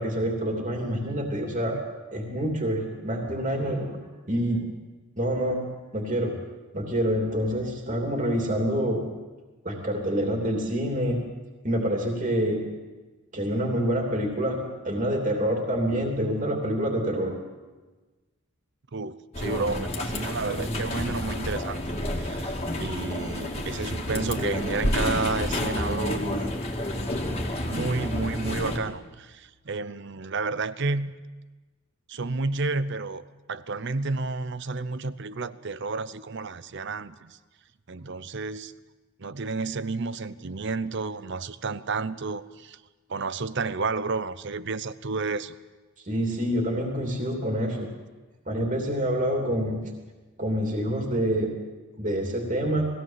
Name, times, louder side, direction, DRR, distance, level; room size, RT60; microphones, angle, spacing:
voice 1, 0.0-1.8 2.1-4.0 4.3-4.7 5.2-5.6 5.9-6.4 6.7-9.1 9.6-11.2 11.6-12.6 13.3-17.3 46.1-47.9 48.5-49.8 50.4-51.5 52.0-52.9, equal, 35° right, 1 dB, 3.0 m, -27 dB
voice 2, 18.9-26.5 27.5-31.1 32.1-37.4 37.9-38.7 39.2-42.8 43.1-45.5, right 3 dB, 55° right, 15 dB, 0.7 m, -31 dB
sound 1, 19.3-28.8, left 1 dB, 30° left, 2.3 m, -29 dB
21.0 x 16.5 x 7.5 m, 1.3 s
head